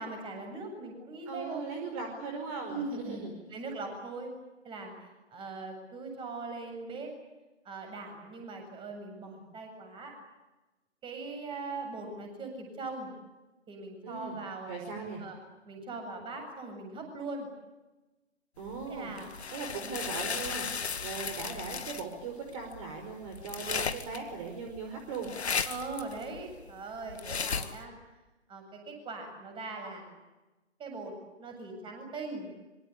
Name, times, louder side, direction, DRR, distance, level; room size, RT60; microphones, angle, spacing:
voice 1, 0.0-1.6 2.7-3.2 3.5-4.3 4.6-4.9 5.3-7.1 7.6-10.2 11.0-13.1 13.7-14.7 15.2-15.4 15.7-17.5 18.9-19.3 25.6-27.9 28.5-30.1 30.8-32.5, right 3 dB, 15° right, 4 dB, 7.8 m, -40 dB
voice 2, 1.3-3.3 14.0-14.4 14.7-15.2 18.6-19.1 19.5-20.7 21.0-25.3, right 4 dB, 30° right, 3 dB, 5.3 m, -39 dB
sound 1, 18.6-27.8, left 5 dB, 65° left, 2.1 m, -36 dB
26.5 x 25.5 x 8.7 m, 1.1 s
figure-of-eight pair, 130°, 35 cm